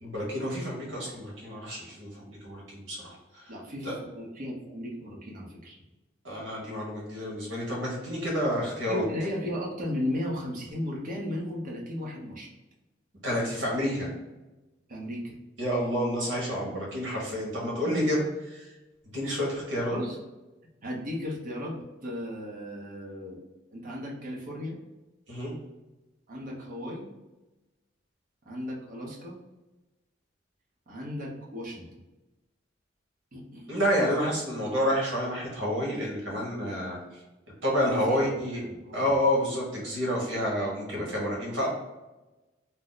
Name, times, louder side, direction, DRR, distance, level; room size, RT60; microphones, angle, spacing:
voice 1, 0.0-3.5 3.8-3.9 6.2-9.0 13.2-14.1 15.6-18.7 19.1-20.0 25.3-25.5 33.7-37.0 37.6-38.6 38.9-41.7, equal, 85° right, -3 dB, 1.3 m, -29 dB
voice 2, 3.5-3.9 4.1-5.8 8.9-12.5 14.9-15.3 19.9-20.2 20.8-23.4 23.7-24.8 26.3-27.0 28.5-29.4 30.9-31.9 33.3-33.7 37.9-39.1, left 1 dB, 45° right, -3 dB, 0.8 m, -35 dB
2.8 x 2.0 x 3.8 m, 1.1 s
head